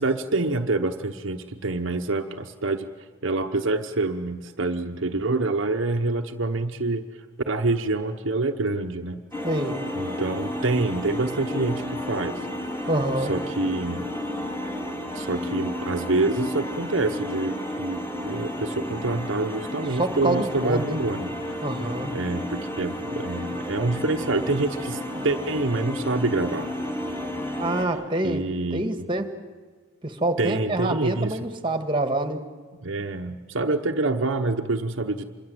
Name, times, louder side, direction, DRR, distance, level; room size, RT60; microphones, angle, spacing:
voice 1, 0.0-2.9 3.2-7.0 7.5-9.2 10.0-12.4 13.3-14.1 15.1-21.3 22.1-26.7 28.2-29.1 30.4-31.5 32.8-35.3, right 2 dB, 60° right, 4 dB, 1.0 m, -26 dB
sound 1, 9.3-27.8, left 1 dB, 10° left, 3.2 m, -32 dB
voice 2, 9.4-9.8 12.9-13.3 19.9-21.0 21.6-22.1 25.2-25.3 27.6-28.4 28.7-29.3 30.0-32.4, right 1 dB, 25° right, 7 dB, 1.7 m, -26 dB
26.0 x 22.5 x 7.8 m, 1.5 s
head